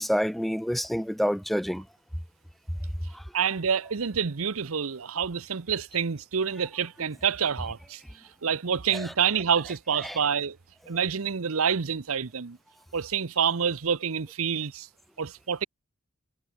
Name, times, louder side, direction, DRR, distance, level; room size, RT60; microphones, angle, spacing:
voice 1, 0.0-1.8 3.1-3.2 8.9-9.1 10.0-10.2, equal, ahead, 0.5 m, -28 dB
voice 2, 3.3-8.0 8.4-10.6 10.9-12.6 12.9-14.9 15.2-15.7, right 7 dB, 85° right, 0.8 m, -27 dB
head